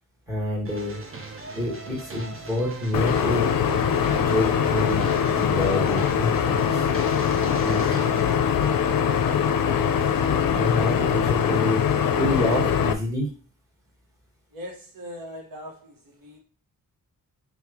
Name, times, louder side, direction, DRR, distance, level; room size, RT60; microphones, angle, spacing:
voice 1, 0.3-1.0 1.5-3.5 4.1-5.0 5.4-6.8 7.6-8.0 10.5-11.9 12.2-13.3, left 1 dB, 10° right, -3 dB, 1.4 m, -28 dB
sound 1, 0.7-8.4, right 3 dB, 40° right, 0.6 m, -39 dB
sound 2, 2.9-12.9, left 8 dB, 80° left, 0.5 m, -22 dB
voice 2, 14.5-16.4, equal, 80° right, 0 dB, 1.1 m, -41 dB
4.6 x 2.4 x 3.5 m, 0.38 s
wide cardioid pair, 170°, 34 cm